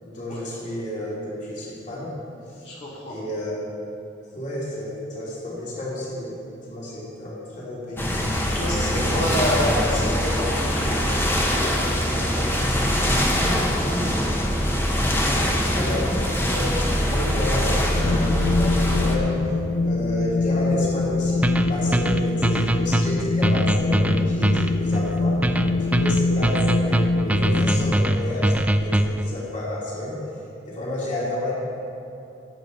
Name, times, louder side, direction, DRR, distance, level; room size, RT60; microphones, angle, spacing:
voice 1, 0.0-2.1 2.5-2.6 3.0-3.6 4.3-6.4 6.7-8.1 8.8-9.4 9.9-10.1 15.7-19.3 19.8-25.4 25.8-30.2 30.7-31.5, left 1 dB, 45° left, -6 dB, 2.6 m, -31 dB
voice 2, 2.6-3.1 8.5-14.1, left 1 dB, 65° left, -7 dB, 2.5 m, -30 dB
sound 1, 8.0-19.2, equal, 15° left, 1.0 m, -23 dB
Wind, 17.9-27.9, left 3 dB, 80° left, 0.4 m, -24 dB
sound 2, 21.4-29.3, right 1 dB, 10° right, 0.3 m, -22 dB
16.5 x 7.6 x 4.0 m, 2.7 s
head